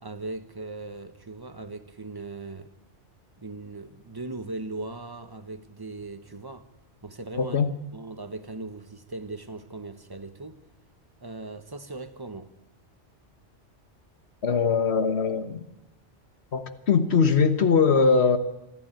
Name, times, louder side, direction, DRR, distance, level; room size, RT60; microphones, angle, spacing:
voice 1, 0.0-2.7 3.4-6.7 7.0-7.6 7.9-10.6 11.2-12.5, right 2 dB, 20° right, 1.2 m, -38 dB
voice 2, 7.4-7.7 14.4-15.6 16.5-18.4, left 5 dB, 65° left, 1.5 m, -21 dB
28.0 x 11.0 x 9.1 m
omnidirectional pair, 1.2 m